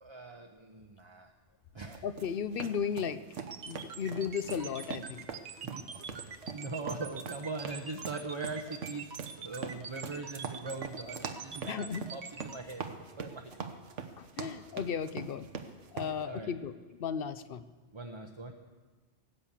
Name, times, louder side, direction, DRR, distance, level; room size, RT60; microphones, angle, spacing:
voice 1, 0.0-1.3 1.7-2.0 5.6-5.8 6.2-13.8 16.2-16.5 17.9-18.5, right 3 dB, 30° right, 3 dB, 0.8 m, -41 dB
sound 1, 1.8-16.2, right 6 dB, 90° right, 1.3 m, -43 dB
voice 2, 2.0-3.2 3.6-5.3 11.7-12.1 14.2-15.5 15.9-16.7 17.0-17.6, left 7 dB, 60° left, 12 dB, 0.8 m, -35 dB
sound 2, 3.5-12.6, right 6 dB, 70° right, 1.1 m, -44 dB
18.0 x 8.3 x 7.3 m, 1.3 s
omnidirectional pair, 1.2 m